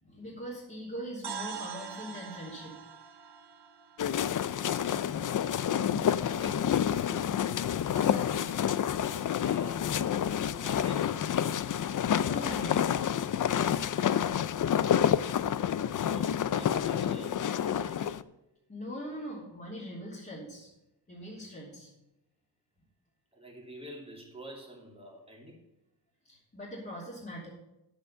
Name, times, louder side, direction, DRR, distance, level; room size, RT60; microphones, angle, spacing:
voice 1, 0.0-2.8 7.8-8.4 12.0-12.8 18.7-20.7 21.1-21.9 26.2-27.5, equal, 20° left, -7 dB, 3.0 m, -41 dB
sound 1, 1.2-5.2, right 7 dB, 65° right, 1.3 m, -44 dB
sound 2, 4.0-18.2, left 9 dB, 50° left, 0.4 m, -28 dB
voice 2, 4.4-4.9 5.9-7.4 9.4-10.1 10.6-11.3 13.6-14.0 15.9-18.2 23.3-25.7, right 1 dB, 15° right, -1 dB, 2.6 m, -47 dB
10.5 x 8.1 x 5.6 m, 0.91 s
wide cardioid pair, 150°, 42 cm